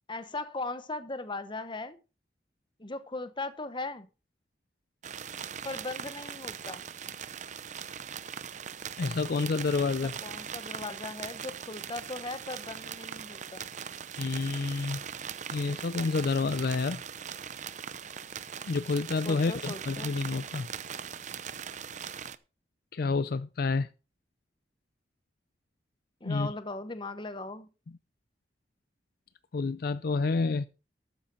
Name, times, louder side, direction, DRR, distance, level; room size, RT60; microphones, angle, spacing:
voice 1, 0.1-2.0 2.8-4.1 5.6-6.8 9.8-9.9 10.2-13.7 19.2-20.1 26.2-27.7, left 2 dB, 25° left, 1.0 m, -38 dB
sound 1, 5.0-22.4, right 8 dB, 45° right, 0.7 m, -40 dB
voice 2, 9.0-10.1 14.2-15.0 15.5-17.0 18.7-20.7 22.9-23.9 26.2-26.5 29.5-30.7, left 4 dB, 55° left, 0.5 m, -29 dB
13.0 x 9.2 x 4.1 m
head